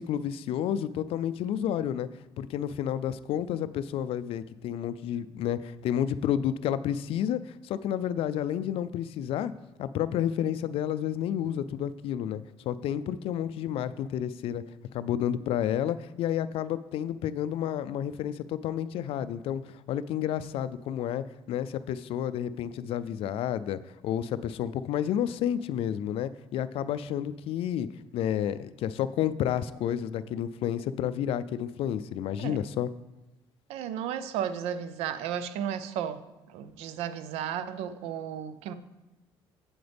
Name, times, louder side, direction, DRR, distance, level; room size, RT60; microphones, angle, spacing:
voice 1, 0.0-2.1 2.4-9.5 9.8-14.6 14.9-27.9 28.1-32.9, left 10 dB, 65° left, 15 dB, 0.4 m, -30 dB
voice 2, 33.7-38.7, right 9 dB, 85° right, 13 dB, 0.5 m, -34 dB
7.8 x 7.8 x 3.4 m, 1.0 s
cardioid pair, 95°, 10 cm